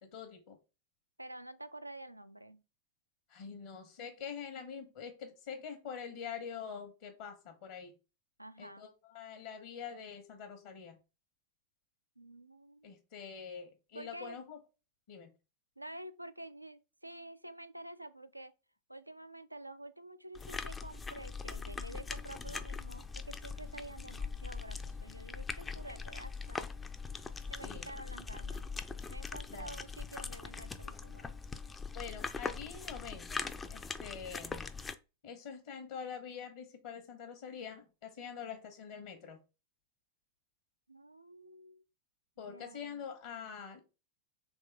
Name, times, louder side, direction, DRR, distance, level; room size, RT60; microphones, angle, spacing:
voice 1, 0.0-0.6 3.3-7.9 8.6-11.0 12.8-14.6 15.1-15.3 27.6-27.9 29.5-29.7 31.9-34.7 35.2-39.4 42.4-43.8, left 7 dB, 55° left, 0.9 m, -45 dB
voice 2, 1.2-2.6 8.4-8.9 12.2-12.9 13.9-14.4 15.8-18.5 18.9-26.7 27.5-28.7 29.1-31.3 40.9-41.8 42.5-43.0, right 1 dB, 85° right, 0.3 m, -49 dB
sound 1, 20.3-34.9, left 4 dB, 15° left, 0.3 m, -41 dB
3.6 x 3.2 x 3.4 m
figure-of-eight pair, 90°, 0 cm